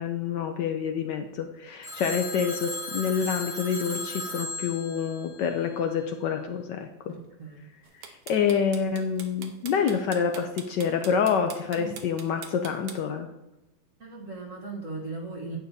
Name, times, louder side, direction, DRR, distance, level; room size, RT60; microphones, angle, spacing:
voice 1, 0.0-7.1 8.0-13.3, left 7 dB, 70° left, 6 dB, 1.1 m, -27 dB
Telephone, 1.8-6.1, left 2 dB, 15° left, 1.6 m, -37 dB
voice 2, 7.1-7.7 11.8-12.0 14.0-15.6, right 3 dB, 45° right, 0 dB, 1.4 m, -38 dB
sound 1, 7.8-13.0, right 7 dB, 85° right, 1.7 m, -42 dB
10.5 x 8.6 x 2.7 m, 0.96 s
omnidirectional pair, 2.2 m